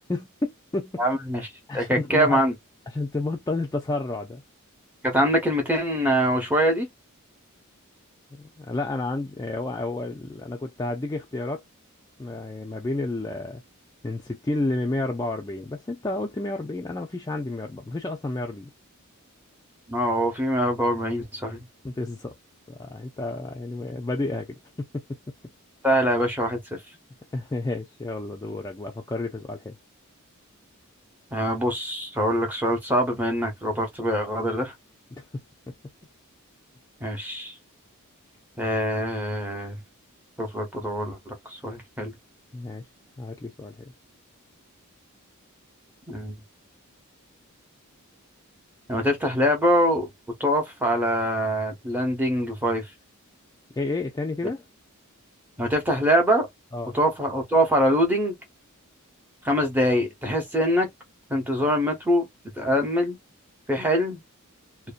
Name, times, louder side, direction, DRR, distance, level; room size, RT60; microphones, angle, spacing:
voice 1, 0.1-1.0 1.7-2.4 2.9-4.4 8.3-11.6 12.2-13.6 14.0-18.7 21.8-22.3 22.7-25.0 27.3-29.8 35.1-35.4 35.7-35.8 42.5-42.8 43.2-43.9 53.7-54.6 56.7-56.9, left 2 dB, 15° left, 0.3 m, -31 dB
voice 2, 1.0-2.5 5.0-6.9 19.9-21.6 25.8-26.8 31.3-34.7 37.0-37.5 38.6-39.8 40.4-42.1 46.1-46.4 48.9-50.1 50.4-52.9 55.6-56.5 56.9-58.4 59.4-60.9 61.3-62.3 62.6-63.2 63.7-64.2, equal, 10° right, 0.7 m, -24 dB
2.6 x 2.1 x 2.4 m
head